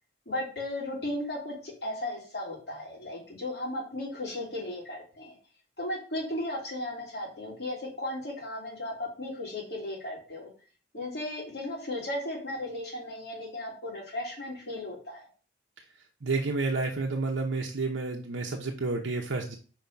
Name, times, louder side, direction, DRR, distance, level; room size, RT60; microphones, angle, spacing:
voice 1, 0.3-5.3 5.8-10.5 10.9-15.3, left 1 dB, 60° left, -4 dB, 3.0 m, -35 dB
voice 2, 16.2-19.6, right 3 dB, 85° right, 1 dB, 0.8 m, -30 dB
5.5 x 4.6 x 4.6 m, 0.39 s
head